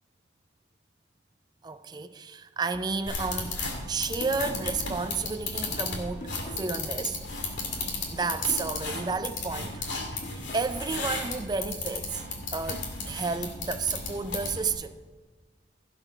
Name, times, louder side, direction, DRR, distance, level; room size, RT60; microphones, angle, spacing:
voice 1, 1.6-3.6 3.9-7.5 8.1-9.8 10.3-12.2 12.5-15.0, right 4 dB, 20° right, 0.4 m, -32 dB
sound 1, 2.7-7.2 7.5-10.7, equal, 40° left, 1.4 m, -46 dB
sound 2, 3.1-14.7, left 3 dB, 75° left, 2.3 m, -34 dB
16.5 x 5.9 x 5.6 m
head